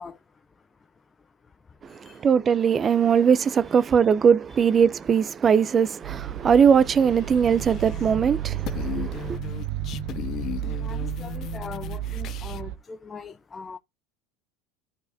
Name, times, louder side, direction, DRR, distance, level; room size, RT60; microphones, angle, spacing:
voice 1, 0.0-2.3 3.7-4.2 4.5-4.7 5.4-5.5 6.3-6.5 8.0-8.1 8.4-13.8, left 5 dB, 20° left, 0.8 m, -44 dB
voice 2, 1.8-9.4, right 7 dB, 30° right, 0.6 m, -20 dB
sound 1, 6.0-12.8, right 12 dB, 65° right, 0.6 m, -33 dB
sound 2, 6.6-8.3 8.5-12.6, left 12 dB, 45° left, 0.4 m, -37 dB
12.5 x 4.8 x 2.7 m
supercardioid pair, 120°, 0 cm